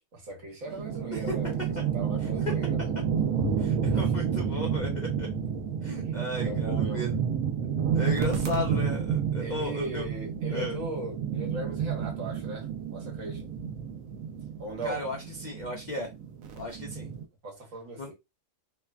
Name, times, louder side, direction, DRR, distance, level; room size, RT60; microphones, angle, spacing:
voice 1, 0.3-1.6 1.9-2.9 6.4-7.2 9.4-13.5 14.6-15.1 17.4-18.1, right 1 dB, 70° right, 1.5 m, -38 dB
sound 1, 0.7-17.2, right 7 dB, 90° right, 1.0 m, -30 dB
voice 2, 2.2-2.5 3.6-5.3 5.8-7.1 7.7-10.1 10.5-10.8 14.8-16.1 16.6-17.1 18.0-18.1, left 2 dB, 60° left, 0.4 m, -35 dB
3.2 x 2.1 x 2.2 m
omnidirectional pair, 1.4 m